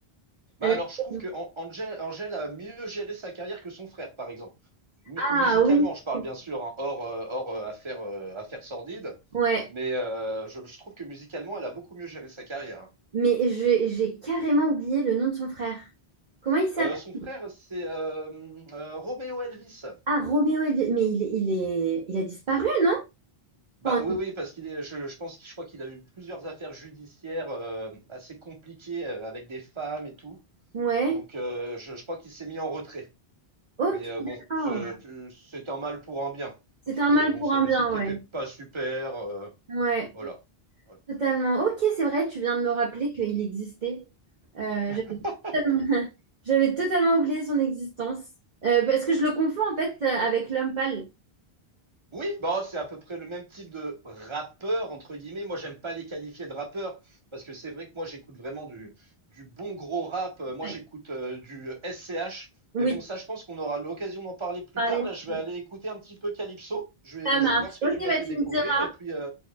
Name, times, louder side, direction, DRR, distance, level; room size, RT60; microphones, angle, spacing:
voice 1, 0.6-4.5 5.1-9.2 9.7-12.9 16.8-20.0 23.8-30.4 31.1-33.1 33.9-36.5 36.9-39.5 40.1-40.4 40.9-41.0 44.9-45.0 45.2-45.5 52.1-58.9 59.3-62.5 62.8-69.3, right 2 dB, 30° right, 1.1 m, -35 dB
voice 2, 5.2-5.9 9.3-9.7 13.1-15.9 16.4-16.9 20.1-23.0 23.8-24.0 30.7-31.2 33.8-34.9 36.9-38.2 39.7-40.1 41.1-44.0 44.5-45.2 45.5-46.1 46.5-48.2 48.6-51.0 60.6-60.7 62.7-63.0 64.8-65.1 67.2-68.9, right 4 dB, 50° right, 0.8 m, -25 dB
4.5 x 2.9 x 2.2 m
omnidirectional pair, 1.0 m